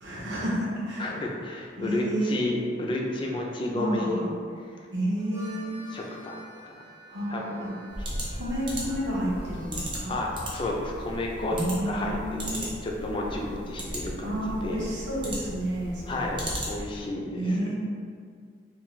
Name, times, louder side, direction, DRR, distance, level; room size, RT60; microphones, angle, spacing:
voice 1, 0.0-1.1 1.8-2.4 3.7-4.3 4.9-5.8 7.1-7.7 8.4-10.1 11.5-12.7 14.2-16.4 17.3-17.7, right 1 dB, 70° right, -6 dB, 0.7 m, -30 dB
voice 2, 1.0-4.2 4.7-4.9 5.9-6.7 7.3-7.7 10.1-11.6 11.9-12.2 12.5-14.9 16.1-17.7, left 2 dB, 25° left, -1 dB, 0.3 m, -32 dB
Harmonica, 5.1-10.0, equal, 60° left, 0.7 m, -49 dB
sound 1, 7.9-17.1, equal, 25° right, 0.5 m, -36 dB
2.5 x 2.4 x 3.0 m, 2.1 s
head